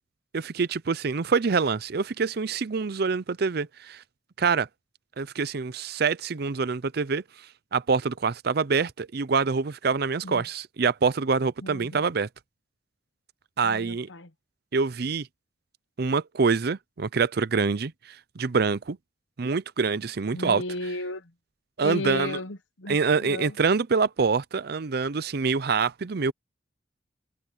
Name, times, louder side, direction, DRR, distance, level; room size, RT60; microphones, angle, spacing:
voice 1, 0.3-4.0 4.4-4.7 5.2-7.2 7.7-12.3 13.6-14.1 14.7-15.3 16.0-19.0 19.4-20.6 21.8-22.4 22.9-26.3, right 5 dB, 60° right, 0.6 m, -25 dB
voice 2, 11.6-12.0 13.6-14.3 20.3-21.2 21.8-23.5, left 2 dB, 90° left, 1.1 m, -34 dB
head